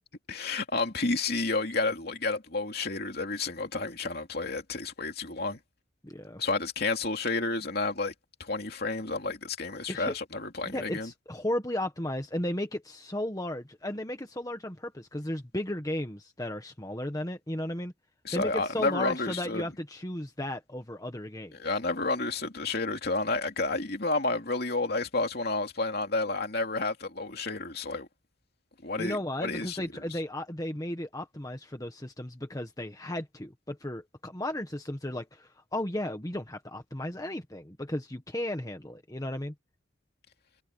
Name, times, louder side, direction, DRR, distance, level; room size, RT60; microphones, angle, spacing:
voice 1, 0.3-5.6 6.4-8.1 8.4-11.1 18.2-19.6 21.6-28.1 28.8-30.2, left 3 dB, 50° left, 2.9 m, -30 dB
voice 2, 6.0-6.4 9.9-10.2 10.7-17.9 18.3-21.6 29.0-39.5, left 1 dB, 15° left, 1.5 m, -35 dB
head